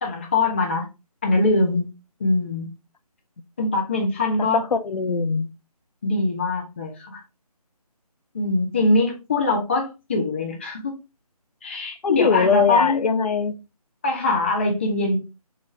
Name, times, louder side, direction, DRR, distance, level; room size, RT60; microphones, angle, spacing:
voice 1, 0.0-0.9 1.2-1.9 2.2-2.7 3.6-4.6 6.0-7.2 8.3-11.0 11.6-13.0 14.0-15.2, left 2 dB, 20° left, 0.6 m, -22 dB
voice 2, 4.5-5.5 12.0-13.5, left 5 dB, 75° left, 0.5 m, -21 dB
4.0 x 2.5 x 3.1 m
figure-of-eight pair, 160°, 20 cm